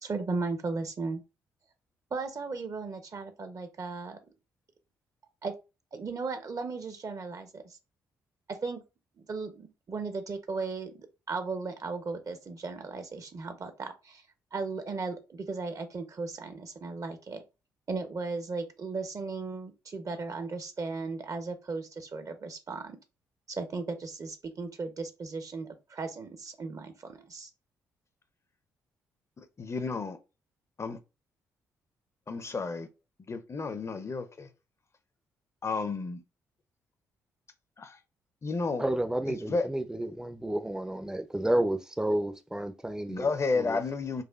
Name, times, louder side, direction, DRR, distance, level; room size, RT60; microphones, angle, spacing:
voice 1, 0.0-1.2 2.1-4.2 5.4-5.5 5.9-7.8 8.5-8.8 9.2-14.2 14.5-17.4 17.9-23.0 23.5-27.5, right 4 dB, 45° right, 0.7 m, -36 dB
voice 2, 29.4-30.2 30.8-31.0 32.3-32.9 33.3-34.5 35.6-36.2 37.8-38.0 38.4-38.9 39.3-39.7 43.1-44.2, left 4 dB, 35° left, 0.6 m, -32 dB
voice 3, 38.8-43.8, right 1 dB, 5° right, 0.5 m, -31 dB
4.0 x 2.5 x 2.4 m
hypercardioid pair, 45°, 8 cm